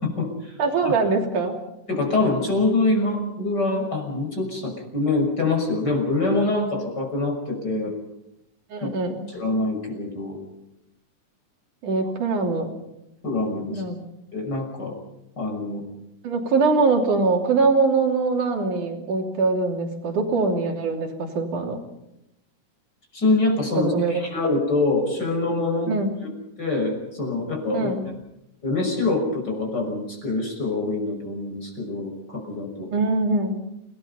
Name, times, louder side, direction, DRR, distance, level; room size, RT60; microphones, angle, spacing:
voice 1, 0.0-0.5 0.8-0.9 1.9-8.0 8.8-8.9 9.3-10.4 13.2-13.8 14.3-15.0 15.4-15.8 23.1-25.9 26.2-26.3 26.6-27.9 28.6-32.9, left 2 dB, 30° left, 2 dB, 6.5 m, -25 dB
voice 2, 0.6-1.6 7.7-7.8 8.7-9.3 11.8-12.7 13.7-14.0 16.2-21.8 23.8-24.2 25.9-26.1 27.7-28.1 32.9-33.6, right 3 dB, 70° right, 2 dB, 4.6 m, -23 dB
29.5 x 19.5 x 5.7 m, 0.85 s
omnidirectional pair, 3.7 m